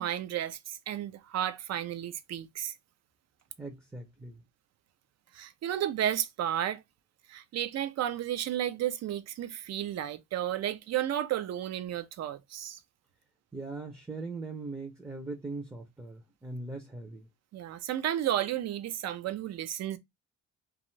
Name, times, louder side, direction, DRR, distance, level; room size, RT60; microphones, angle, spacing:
voice 1, 0.0-2.8 5.3-6.8 7.3-12.8 17.5-20.0, right 11 dB, 60° right, 0.5 m, -32 dB
voice 2, 3.6-4.4 13.5-17.3, right 3 dB, 10° right, 0.6 m, -40 dB
2.4 x 2.4 x 3.1 m
cardioid pair, 90°, 30 cm